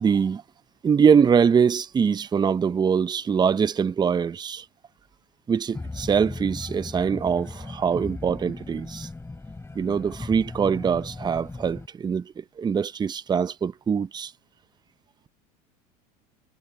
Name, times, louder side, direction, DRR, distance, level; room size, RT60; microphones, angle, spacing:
voice 1, 0.0-0.4 0.8-4.7 5.5-9.1 9.7-14.3, right 6 dB, 20° right, 0.7 m, -23 dB
sound 1, 5.7-11.9, left 3 dB, 10° left, 7.1 m, -37 dB
hypercardioid pair, 95°, 20 cm